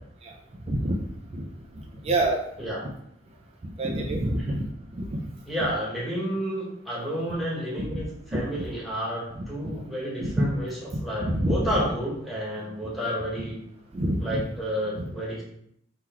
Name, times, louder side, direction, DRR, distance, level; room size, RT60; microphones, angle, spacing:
voice 1, 0.7-1.0 1.3-1.4 2.0-2.4 3.8-4.6 5.0-5.2 7.8-8.0 8.3-8.7 9.3-9.4 10.4-10.5 11.2-11.8 13.1-13.2 13.9-14.4 14.9-15.0, right 1 dB, 30° right, -1 dB, 0.5 m, -26 dB
voice 2, 5.5-13.5 14.2-15.4, equal, ahead, -6 dB, 1.3 m, -31 dB
3.9 x 3.0 x 4.4 m, 0.71 s
head